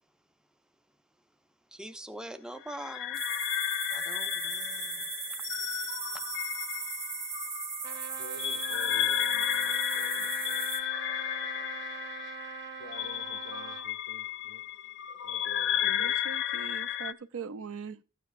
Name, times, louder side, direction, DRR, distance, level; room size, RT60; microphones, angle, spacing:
voice 1, 1.7-3.2 3.9-6.3, right 1 dB, 5° right, 0.5 m, -45 dB
sound 1, 2.7-17.1, left 11 dB, 55° left, 0.4 m, -33 dB
sound 2, 3.1-10.8, right 6 dB, 25° right, 1.0 m, -38 dB
Trumpet, 7.8-13.9, right 8 dB, 55° right, 1.8 m, -43 dB
voice 2, 8.2-10.7 12.8-14.6 15.2-16.2, left 2 dB, 85° left, 0.8 m, -48 dB
voice 3, 15.8-18.0, right 6 dB, 70° right, 0.5 m, -41 dB
12.5 x 9.2 x 2.5 m
head